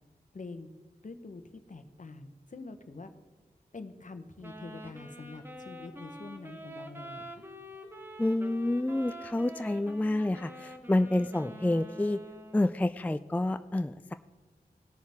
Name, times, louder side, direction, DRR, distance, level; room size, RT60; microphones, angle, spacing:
voice 1, 0.3-0.7 1.0-3.1 3.7-7.5, left 3 dB, 50° left, 9 dB, 1.0 m, -45 dB
Wind instrument woodwind instrument, 4.4-12.9, equal, 15° right, 1.3 m, -46 dB
voice 2, 8.2-12.2 12.5-14.1, left 1 dB, 10° left, 11 dB, 0.3 m, -28 dB
18.0 x 6.4 x 3.5 m, 1.3 s
cardioid pair, 45°, 16 cm